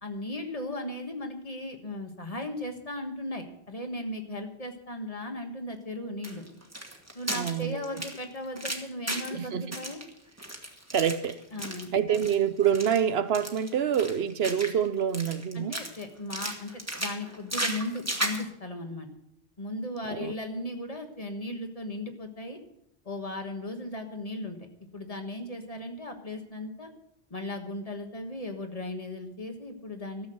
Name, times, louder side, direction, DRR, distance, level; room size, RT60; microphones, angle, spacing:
voice 1, 0.0-6.4 7.1-10.0 11.5-12.3 15.5-19.1 19.6-22.6 23.0-26.9 27.3-30.3, left 1 dB, 35° left, 1.5 m, -37 dB
sound 1, 6.2-9.4 9.7-11.9 12.1-12.3 12.6-13.0 13.3-14.9 15.1-16.0 16.3-18.4, right 1 dB, 15° right, 1.6 m, -35 dB
voice 2, 7.3-8.0 9.3-9.8 10.9-11.4 11.9-15.7 20.1-20.3, right 8 dB, 70° right, 0.9 m, -27 dB
13.0 x 7.4 x 7.7 m
omnidirectional pair, 1.1 m